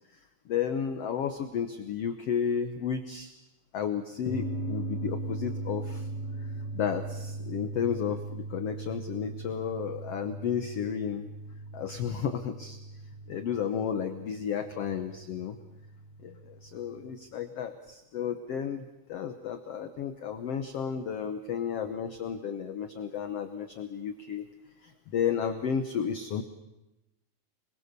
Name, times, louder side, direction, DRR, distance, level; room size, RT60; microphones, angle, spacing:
voice 1, 0.4-3.3 3.7-6.1 6.7-11.3 11.7-12.8 13.3-15.6 16.2-24.4 24.8-26.4, left 7 dB, 80° left, 8 dB, 1.4 m, -32 dB
sound 1, 4.3-17.2, right 2 dB, 55° left, 1.1 m, -39 dB
26.5 x 21.0 x 6.8 m, 0.95 s
omnidirectional pair, 4.3 m